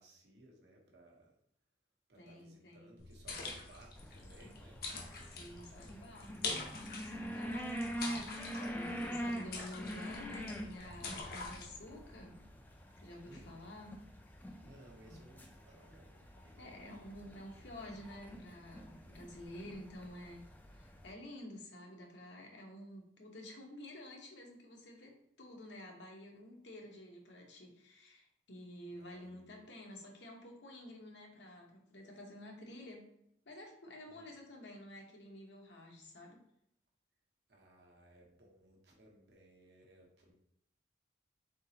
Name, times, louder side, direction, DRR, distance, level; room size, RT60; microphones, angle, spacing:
voice 1, 0.0-1.3 2.1-4.8 9.2-9.4 13.2-13.5 14.6-16.8 28.9-29.5 34.1-34.3 37.5-40.3, right 1 dB, 70° right, 0 dB, 1.0 m, -61 dB
voice 2, 2.2-3.0 5.3-6.6 7.0-7.9 8.7-12.5 13.0-13.9 16.6-20.4 20.7-33.1 33.5-36.4, left 1 dB, 80° left, 1 dB, 1.0 m, -51 dB
sound 1, 3.0-11.7, left 3 dB, 55° left, 0.6 m, -45 dB
sound 2, 4.0-21.1, equal, 10° left, 0.4 m, -45 dB
3.9 x 3.6 x 2.8 m, 0.75 s
head